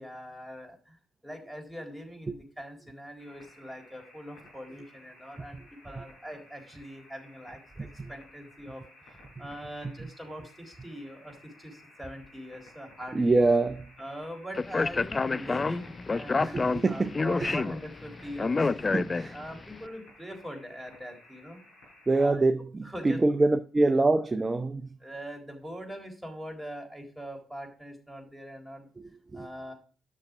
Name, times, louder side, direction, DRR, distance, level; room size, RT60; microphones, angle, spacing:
voice 1, 0.0-13.4 14.0-18.8 19.3-21.6 22.1-22.4 22.8-23.2 25.0-28.9 29.3-29.7, equal, 5° right, 3.9 m, -42 dB
sound 1, 3.2-22.2, left 1 dB, 80° left, 6.2 m, -56 dB
voice 2, 13.1-13.8 16.4-17.1 17.4-17.6 18.6-19.3 22.1-24.9 29.0-29.5, right 2 dB, 25° right, 0.7 m, -25 dB
Speech, 14.5-19.6, left 4 dB, 35° left, 0.4 m, -28 dB
11.0 x 6.7 x 4.9 m
hypercardioid pair, 50°, 0 cm